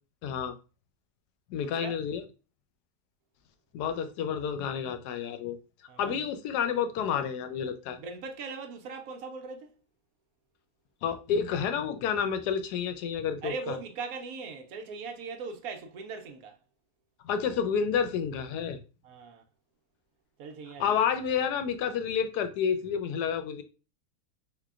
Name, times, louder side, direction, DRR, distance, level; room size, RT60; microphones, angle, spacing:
voice 1, 0.2-0.5 1.5-2.2 3.7-5.6 6.0-8.0 11.0-13.7 17.2-18.8 20.8-23.6, left 7 dB, 85° left, 1.1 m, -30 dB
voice 2, 5.9-6.2 8.0-9.8 13.4-16.6 19.0-19.4 20.4-21.0, right 4 dB, 70° right, 1.0 m, -39 dB
3.6 x 3.3 x 2.3 m
omnidirectional pair, 1.7 m